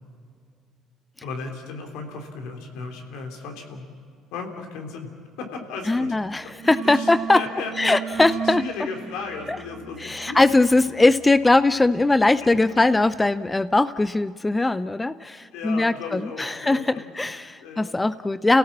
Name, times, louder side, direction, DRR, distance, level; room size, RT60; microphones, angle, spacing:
voice 1, 1.2-3.9 4.3-5.1 5.4-6.1 6.8-8.0 8.4-10.4 15.5-17.9, left 4 dB, 80° left, 2 dB, 3.5 m, -35 dB
sound 1, 5.8-6.1 6.4-13.0, right 7 dB, 45° right, 2.0 m, -37 dB
voice 2, 5.9-7.4 7.8-8.6 9.5-9.6 10.0-18.6, left 2 dB, 15° left, 14 dB, 0.6 m, -20 dB
29.5 x 17.0 x 7.4 m, 2.2 s
supercardioid pair, 80°, 0 cm